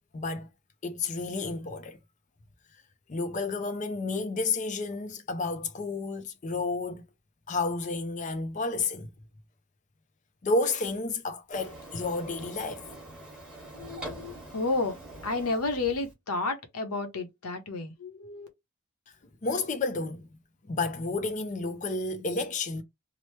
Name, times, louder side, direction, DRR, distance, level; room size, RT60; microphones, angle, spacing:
voice 1, 0.1-0.5 0.8-2.0 3.1-7.1 7.5-9.1 10.4-12.8 19.4-20.3 20.7-22.8, left 3 dB, 35° left, 0.4 m, -31 dB
Printer, 11.5-16.1, right 2 dB, 5° right, 1.2 m, -44 dB
voice 2, 13.7-15.0 15.2-18.5, left 3 dB, 90° left, 0.8 m, -31 dB
3.0 x 2.0 x 3.1 m
head